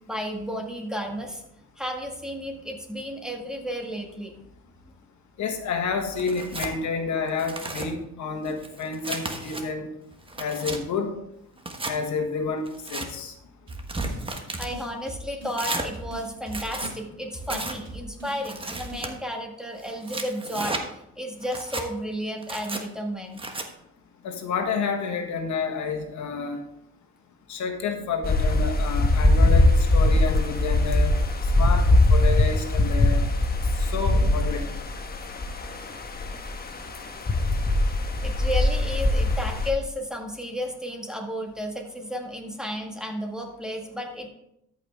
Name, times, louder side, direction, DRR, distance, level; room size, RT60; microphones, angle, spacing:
voice 1, 0.1-1.4 1.8-4.3 14.6-20.8 21.2-23.4 38.2-44.3, equal, ahead, 1 dB, 1.8 m, -32 dB
voice 2, 5.4-9.9 10.4-11.1 11.9-13.3 24.2-26.6 27.5-31.2 31.6-33.2 33.9-34.8, left 5 dB, 70° left, 5 dB, 1.6 m, -29 dB
Tearing, 6.2-6.7 7.3-7.9 8.5-9.6 10.1-10.8 11.6-12.0 12.7-13.1 13.7-14.7 15.5-15.9 16.4-16.9 17.5-17.8 18.4-19.1 19.8-20.8 21.4-21.9 22.4-22.8 23.4-23.7, right 2 dB, 15° right, 1.2 m, -33 dB
sound 1, 13.7-14.2 14.5-15.6 15.9-17.0 17.3-18.4 18.7-19.1, right 1 dB, 45° right, 3.4 m, -40 dB
sound 2, 28.2-39.7, left 2 dB, 30° left, 1.2 m, -21 dB
13.0 x 5.7 x 3.5 m, 0.78 s
cardioid pair, 90°, 30 cm